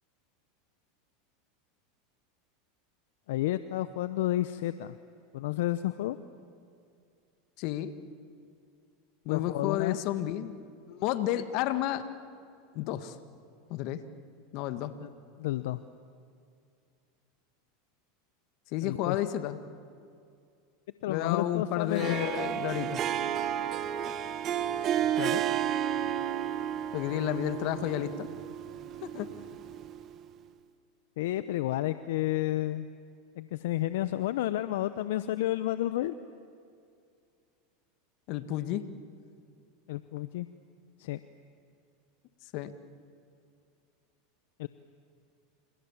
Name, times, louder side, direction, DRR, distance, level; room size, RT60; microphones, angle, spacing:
voice 1, 3.3-4.9 5.3-6.2 9.3-10.0 15.0-15.1 15.4-15.8 18.8-19.2 21.0-22.3 31.2-32.9 33.4-36.1 39.9-40.5 41.0-41.2 44.6-44.7, left 14 dB, 75° left, 13 dB, 0.8 m, -31 dB
voice 2, 7.6-7.9 9.3-10.5 10.9-12.0 12.8-13.1 13.7-14.0 14.5-14.9 18.7-19.6 21.1-23.0 25.2-25.4 26.9-28.3 29.0-29.3 38.3-38.8 42.5-42.7, left 12 dB, 60° left, 11 dB, 1.8 m, -31 dB
Harp, 21.9-30.2, right 10 dB, 40° right, 1.6 m, -32 dB
29.0 x 28.0 x 7.3 m, 2.4 s
hypercardioid pair, 100°, 0 cm